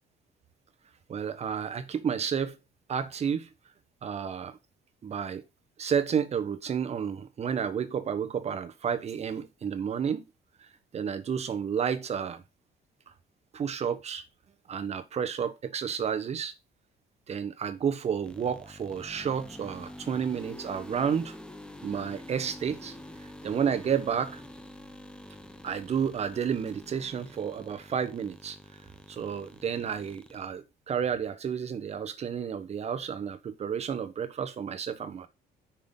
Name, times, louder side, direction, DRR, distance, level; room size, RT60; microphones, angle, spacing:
voice 1, 1.1-2.6 2.9-3.5 4.0-4.6 5.0-5.4 5.8-10.2 10.9-12.4 13.5-14.2 14.7-16.5 17.3-21.4 21.8-22.9 23.4-24.4 25.6-28.6 29.1-35.3, right 7 dB, 40° right, 1.0 m, -31 dB
sound 1, 18.2-30.4, left 1 dB, 5° left, 0.8 m, -47 dB
5.7 x 3.8 x 5.1 m
cardioid pair, 110°, 17 cm